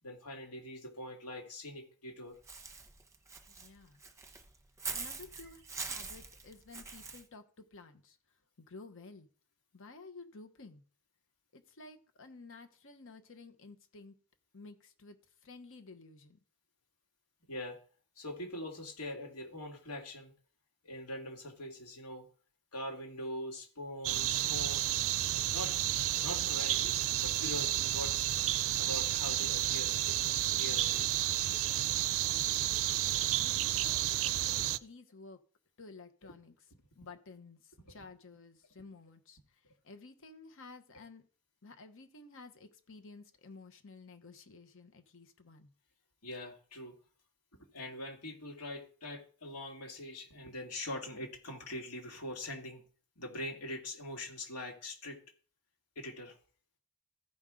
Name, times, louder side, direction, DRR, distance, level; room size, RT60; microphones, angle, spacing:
voice 1, 0.0-2.4 17.5-17.8 18.2-20.3 20.8-22.2 22.7-25.0 25.5-25.7 26.1-28.3 28.8-31.2 36.2-36.3 46.2-47.0 47.7-52.8 53.2-55.2 56.0-56.4, left 1 dB, 85° left, 1 dB, 2.4 m, -43 dB
Walk footsteps / Bird, 2.5-7.2, right 4 dB, 15° right, 1.0 m, -43 dB
voice 2, 3.5-4.0 4.9-8.2 8.6-9.3 9.7-10.8 11.5-14.1 14.5-15.2 15.4-16.4 32.4-32.7 33.4-35.4 35.8-36.7 36.9-41.2 41.6-45.7, left 3 dB, 60° left, 7 dB, 1.1 m, -53 dB
sound 1, 24.0-34.8, right 13 dB, 65° right, 0.4 m, -31 dB
15.0 x 5.4 x 3.8 m, 0.42 s
head